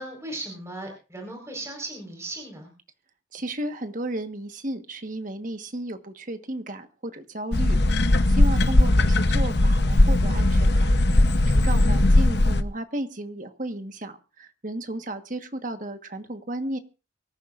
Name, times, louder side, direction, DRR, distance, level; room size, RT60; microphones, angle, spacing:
voice 1, 0.0-2.7, right 1 dB, 15° right, 1 dB, 4.6 m, -37 dB
voice 2, 3.3-7.8 8.3-10.9 11.5-16.8, right 1 dB, 40° right, 8 dB, 1.4 m, -33 dB
sound 1, 7.5-12.6, left 1 dB, 55° left, 0.9 m, -19 dB
24.0 x 14.0 x 2.5 m, 0.33 s
head